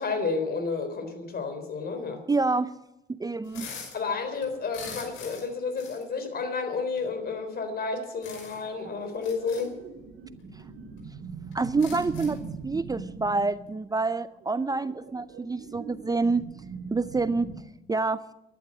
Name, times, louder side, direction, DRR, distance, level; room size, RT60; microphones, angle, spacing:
voice 1, 0.0-2.2 3.9-9.7, left 4 dB, 50° left, 7 dB, 3.8 m, -31 dB
voice 2, 2.3-2.7 3.1-3.7 11.5-12.4 12.6-16.4 16.9-17.5 17.9-18.2, right 3 dB, 20° right, 14 dB, 0.5 m, -27 dB
sound 1, 3.4-4.0 4.3-5.5 5.8-6.0 7.0-7.1 8.2-8.7 9.1-9.6 10.6-10.7 11.0-11.1 11.5-12.4, left 5 dB, 85° left, 5.8 m, -42 dB
sound 2, 8.5-17.6, right 5 dB, 75° right, 2.2 m, -42 dB
12.5 x 11.5 x 8.6 m, 0.88 s
cardioid pair, 90°, 20 cm